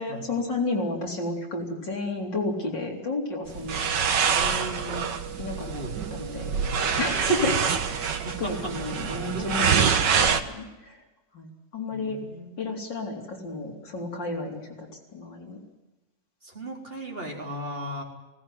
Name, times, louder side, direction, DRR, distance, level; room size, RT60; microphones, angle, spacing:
voice 1, 0.0-3.9 5.4-5.7 6.1-6.5 7.0-7.6 7.9-11.0 11.3-12.2 12.6-15.6, left 2 dB, 85° left, 0 dB, 4.6 m, -31 dB
sound 1, 3.5-10.4, right 6 dB, 75° right, 2.0 m, -26 dB
voice 2, 4.3-5.1 5.6-5.9 7.4-7.6 8.2-9.7 11.9-12.6 16.4-18.0, equal, 30° right, 0 dB, 4.4 m, -37 dB
19.5 x 18.0 x 9.4 m, 1.0 s
omnidirectional pair, 1.9 m